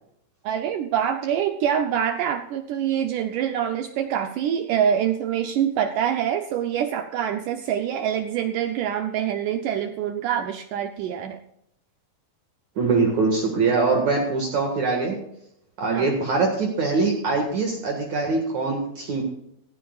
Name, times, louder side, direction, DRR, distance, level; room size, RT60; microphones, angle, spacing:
voice 1, 0.4-11.4 15.9-16.1, right 9 dB, 80° right, 7 dB, 1.9 m, -25 dB
voice 2, 12.8-15.2 15.8-19.2, right 4 dB, 55° right, 0 dB, 2.8 m, -23 dB
17.0 x 15.0 x 2.4 m, 0.76 s
omnidirectional pair, 4.4 m